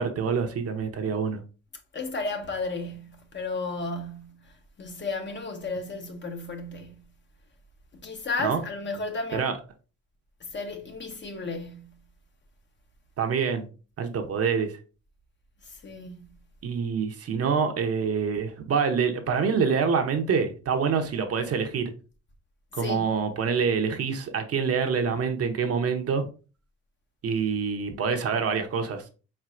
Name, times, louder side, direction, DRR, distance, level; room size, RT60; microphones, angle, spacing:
voice 1, 0.0-1.4 8.4-8.6 9.3-9.5 13.2-13.7 14.0-14.7 16.6-21.9 22.7-26.3 27.2-29.0, right 6 dB, 50° right, 0.8 m, -26 dB
voice 2, 1.9-7.1 7.9-9.5 10.4-12.0 15.6-16.4 22.7-23.1, left 3 dB, 40° left, 0.9 m, -34 dB
4.4 x 4.0 x 2.5 m
cardioid pair, 90°, 30 cm